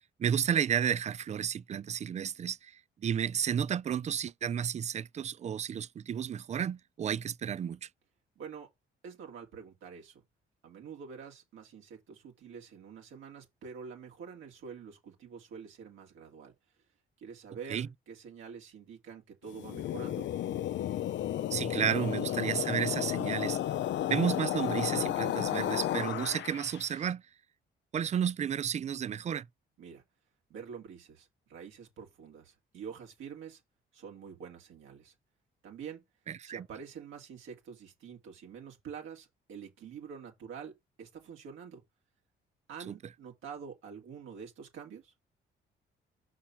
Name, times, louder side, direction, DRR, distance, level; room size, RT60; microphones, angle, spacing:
voice 1, 0.2-7.9 17.7-17.9 21.5-23.6 24.1-27.2 27.9-29.5 36.3-36.6 42.9-43.0, right 8 dB, 35° right, 0.4 m, -32 dB
voice 2, 8.4-8.7 9.0-10.2 10.6-16.5 17.2-20.3 29.8-30.0 30.5-33.6 33.9-35.1 35.6-36.0 36.4-41.8 42.7-45.1, right 6 dB, 85° right, 2.5 m, -47 dB
sound 1, 19.5-26.9, left 12 dB, 70° left, 0.6 m, -33 dB
5.7 x 4.3 x 6.1 m
cardioid pair, 90°, 20 cm